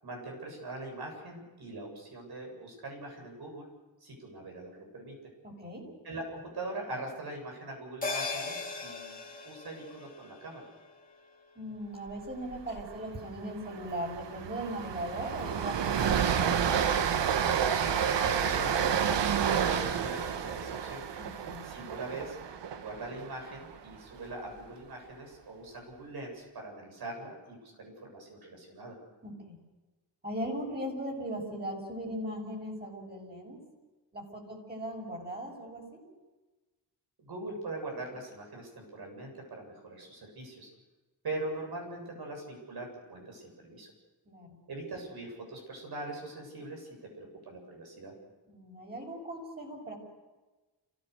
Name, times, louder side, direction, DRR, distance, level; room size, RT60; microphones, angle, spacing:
voice 1, 0.0-3.7 4.0-5.1 6.0-10.6 17.7-19.2 19.6-21.0 21.6-22.4 22.7-29.0 37.2-40.7 41.2-43.9 44.7-46.9 47.2-48.1, right 2 dB, 60° right, 1 dB, 7.9 m, -42 dB
voice 2, 5.4-5.8 11.5-16.6 21.2-21.6 29.2-29.6 30.2-33.6 34.1-36.0 44.2-44.6 48.5-49.9, right 1 dB, 25° right, 0 dB, 6.5 m, -38 dB
sound 1, 8.0-12.7 13.0-13.1, left 3 dB, 20° left, 3.1 m, -40 dB
Train, 12.5-12.8 13.1-13.2 13.6-23.8, right 8 dB, 85° right, 1.3 m, -30 dB
29.5 x 15.5 x 6.6 m, 1.2 s
wide cardioid pair, 115°, 42 cm